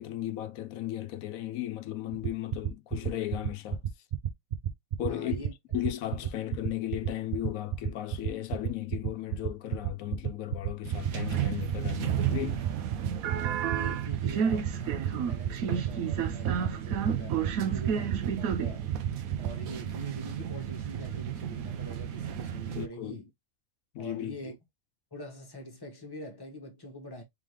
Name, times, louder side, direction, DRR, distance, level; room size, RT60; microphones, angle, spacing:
voice 1, 0.0-3.8 5.0-5.4 5.7-12.6 22.8-23.2 23.9-24.4, left 13 dB, 80° left, 1.1 m, -35 dB
sound 1, 2.1-19.5, right 11 dB, 60° right, 0.5 m, -30 dB
voice 2, 5.0-5.5 6.1-6.3 13.3-18.9 19.4-23.3 24.0-24.6 25.1-27.2, equal, 15° left, 1.3 m, -44 dB
sound 2, 10.8-22.9, right 8 dB, 85° right, 1.1 m, -32 dB
3.7 x 3.6 x 3.1 m
omnidirectional pair, 1.4 m